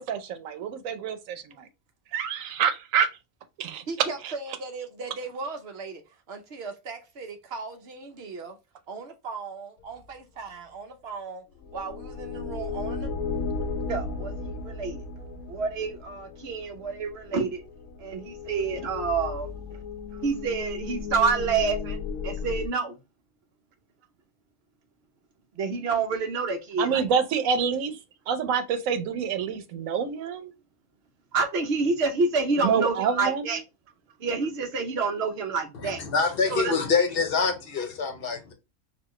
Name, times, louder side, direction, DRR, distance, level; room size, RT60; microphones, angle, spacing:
voice 1, 0.0-1.6 2.1-3.1 3.6-4.3 26.8-27.9 28.3-30.5 32.6-33.5, right 7 dB, 90° right, 1.0 m, -27 dB
voice 2, 3.9-6.0 6.3-8.6 8.9-11.4 11.7-13.1 13.9-17.6 18.0-19.8 20.2-22.0 22.2-23.0 25.5-27.0 31.3-33.6 34.2-36.0 36.5-36.7, right 4 dB, 60° right, 0.9 m, -30 dB
sound 1, 11.6-22.7, left 4 dB, 80° left, 0.9 m, -35 dB
voice 3, 35.8-38.5, left 5 dB, 55° left, 0.9 m, -25 dB
4.2 x 2.4 x 3.0 m
omnidirectional pair, 1.3 m